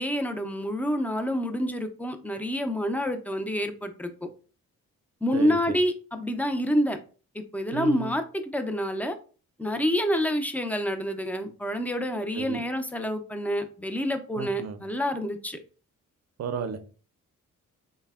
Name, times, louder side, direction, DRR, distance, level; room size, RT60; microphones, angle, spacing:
voice 1, 0.0-4.3 5.2-7.0 7.3-9.2 9.6-15.6, equal, 5° left, 0.4 m, -28 dB
voice 2, 7.7-8.1 12.3-12.6 14.3-14.8 16.4-16.8, right 6 dB, 50° right, 0.5 m, -33 dB
3.2 x 2.1 x 2.3 m
cardioid pair, 60°, 34 cm